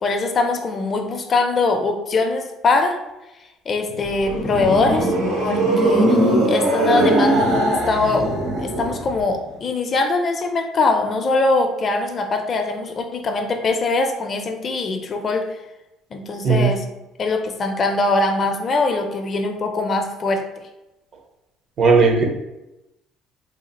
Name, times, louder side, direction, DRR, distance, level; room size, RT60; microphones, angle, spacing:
voice 1, 0.0-3.0 3.7-8.3 8.6-15.5 16.1-16.9 17.2-20.4, left 3 dB, 35° left, 5 dB, 0.4 m, -22 dB
sound 1, 3.9-9.3, right 1 dB, 70° right, 1.4 m, -20 dB
voice 2, 21.8-22.3, right 4 dB, 45° right, 4 dB, 0.5 m, -15 dB
3.2 x 2.4 x 4.0 m, 0.95 s
cardioid pair, 135°, 0 cm